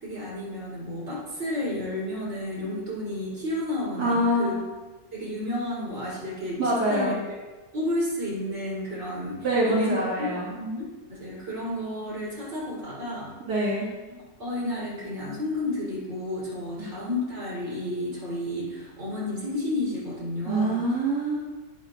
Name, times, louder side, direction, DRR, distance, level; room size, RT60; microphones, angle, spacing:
voice 1, 0.0-4.5 5.1-6.6 6.9-7.1 7.7-13.3 14.1-20.8, left 1 dB, 45° right, -7 dB, 3.9 m, -31 dB
voice 2, 4.0-4.6 6.6-7.2 9.4-10.5 13.4-13.9 16.8-16.9 20.5-21.4, right 1 dB, 85° right, -7 dB, 2.7 m, -25 dB
12.0 x 9.6 x 2.6 m, 1.2 s
omnidirectional pair, 1.7 m